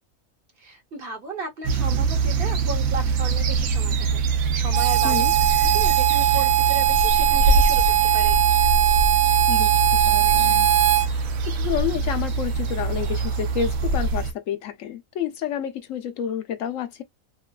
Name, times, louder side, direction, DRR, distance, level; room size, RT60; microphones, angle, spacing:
voice 1, 0.6-5.2 5.6-8.4, right 3 dB, 45° right, 1.1 m, -35 dB
sound 1, 1.6-14.3, right 3 dB, 85° right, 1.1 m, -23 dB
Harmonica, 4.7-11.1, right 13 dB, 65° right, 0.6 m, -20 dB
voice 2, 9.5-10.7 11.1-17.0, left 9 dB, 75° left, 1.0 m, -30 dB
3.0 x 2.4 x 2.2 m
omnidirectional pair, 1.4 m